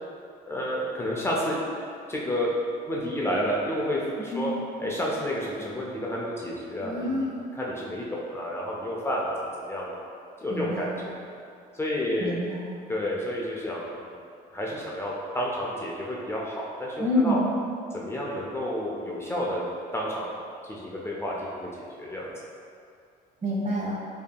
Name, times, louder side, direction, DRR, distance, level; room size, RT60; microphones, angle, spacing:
voice 1, 0.5-1.6 2.1-2.5 2.9-4.5 4.8-7.3 7.5-9.3 9.7-10.0 10.4-11.2 11.7-12.3 12.9-14.1 14.5-17.0 17.2-17.4 17.9-19.6 19.9-20.3 20.6-21.7 22.0-22.3, equal, 15° left, -4 dB, 0.5 m, -30 dB
voice 2, 6.8-7.4 10.5-11.0 12.2-12.7 17.0-17.4 23.4-24.0, left 1 dB, 45° right, -4 dB, 0.9 m, -27 dB
5.1 x 2.8 x 2.2 m, 2.4 s
cardioid pair, 110°, 17 cm